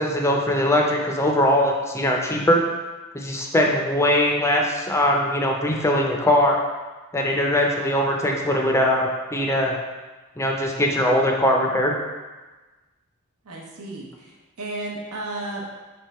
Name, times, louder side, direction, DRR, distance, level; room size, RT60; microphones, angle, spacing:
voice 1, 0.0-2.6 3.1-6.6 7.1-9.8 10.4-11.9, left 1 dB, 15° left, 0 dB, 0.4 m, -21 dB
voice 2, 13.4-15.7, right 2 dB, 90° right, -1 dB, 0.8 m, -33 dB
3.5 x 3.4 x 4.1 m, 1.2 s
head